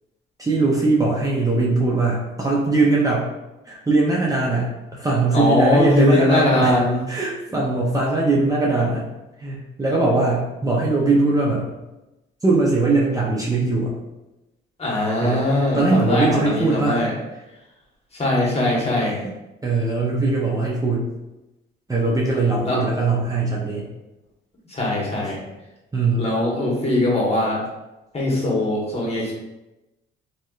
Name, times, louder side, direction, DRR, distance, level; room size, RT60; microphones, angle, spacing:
voice 1, 0.4-3.3 3.7-6.7 7.1-9.0 9.4-11.7 12.4-13.9 15.2-15.5 15.7-17.0 19.6-21.0 21.9-23.9 25.9-26.3, right 3 dB, 20° right, -5 dB, 0.6 m, -20 dB
voice 2, 5.3-7.0 7.5-7.6 14.8-17.1 18.1-19.2 22.6-22.8 24.7-25.4 26.2-27.6 28.1-29.3, left 1 dB, 30° left, -4 dB, 1.1 m, -21 dB
3.2 x 2.7 x 2.3 m, 0.99 s
cardioid pair, 90°, 20 cm